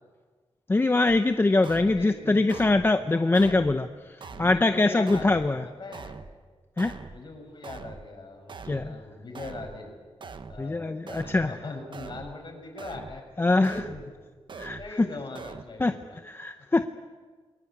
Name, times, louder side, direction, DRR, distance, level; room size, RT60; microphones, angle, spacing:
voice 1, 0.7-3.9 4.4-5.6 6.8-7.0 8.6-9.0 10.6-11.5 13.4-13.7 14.6-14.8 15.8-15.9 16.2-16.8, left 2 dB, 20° left, 8 dB, 0.8 m, -23 dB
sound 1, 1.1-1.2 1.6-2.1 2.5-2.9 3.3-3.8 4.2-4.6 5.1-5.5 5.9-6.3 6.8-7.2 7.6-8.1 8.5-8.9 9.3-9.8 10.2-10.6 11.1-11.5 11.9-12.3 12.8-13.2 13.6-14.1 14.5-14.9 15.3-15.6, right 4 dB, 55° right, 1.3 m, -42 dB
voice 2, 1.7-3.6 4.3-6.2 7.1-9.9 10.5-14.1 14.6-16.2, left 3 dB, 45° left, 3 dB, 6.2 m, -41 dB
29.5 x 22.0 x 8.7 m, 1.5 s
wide cardioid pair, 145°, 10 cm